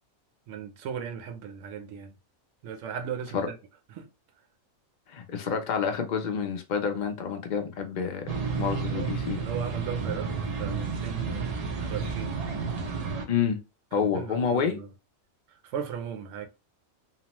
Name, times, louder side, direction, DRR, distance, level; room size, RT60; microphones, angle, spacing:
voice 1, 0.5-2.1 2.6-3.4 3.9-4.1 8.7-9.1 9.4-12.4 13.9-14.9 15.6-16.5, right 7 dB, 70° right, 1.0 m, -37 dB
voice 2, 5.1-8.2 8.6-9.4 13.3-13.6 13.9-14.8, left 7 dB, 55° left, 0.5 m, -28 dB
sound 1, 8.3-13.2, right 5 dB, 55° right, 0.4 m, -31 dB
2.9 x 2.0 x 2.9 m
omnidirectional pair, 1.4 m